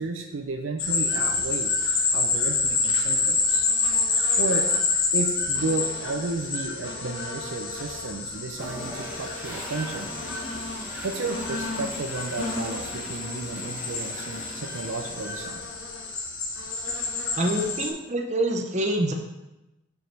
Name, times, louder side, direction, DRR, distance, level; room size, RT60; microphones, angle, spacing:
voice 1, 0.0-1.7 2.1-3.7 4.4-4.7 5.1-10.1 11.0-15.6, right 3 dB, 65° right, 4 dB, 0.5 m, -32 dB
sound 1, 0.8-17.9, left 4 dB, 75° left, 1.1 m, -28 dB
Toilet flush, 8.5-15.8, equal, 5° right, 1.5 m, -41 dB
voice 2, 17.4-19.1, right 1 dB, 35° right, 3 dB, 0.7 m, -26 dB
5.2 x 4.8 x 5.9 m, 0.97 s
head